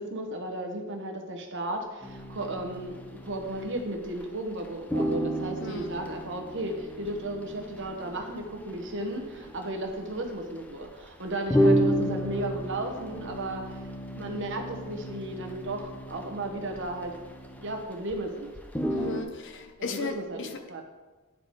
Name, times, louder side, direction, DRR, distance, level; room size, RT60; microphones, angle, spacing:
voice 1, 0.0-13.9 14.1-17.1 17.6-18.5 19.9-20.4 20.7-20.8, right 1 dB, 55° right, 4 dB, 1.0 m, -34 dB
sound 1, 2.0-4.3 4.5-4.6 4.9-18.2 18.5-19.2, equal, 5° left, 0.5 m, -32 dB
voice 2, 5.6-5.9 18.9-20.8, left 4 dB, 55° left, 5 dB, 0.7 m, -36 dB
10.0 x 4.2 x 4.7 m, 1.3 s
head